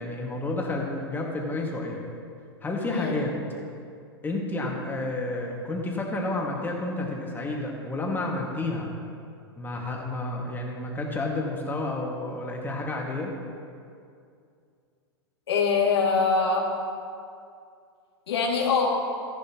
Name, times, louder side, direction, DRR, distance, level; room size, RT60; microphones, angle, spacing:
voice 1, 0.0-2.1 2.6-3.3 4.2-8.9 9.6-13.3, left 2 dB, 15° left, -1 dB, 2.0 m, -30 dB
voice 2, 15.5-16.7 18.3-18.9, left 5 dB, 75° left, -3 dB, 2.5 m, -23 dB
14.0 x 11.0 x 3.0 m, 2.4 s
hypercardioid pair, 100°, 14 cm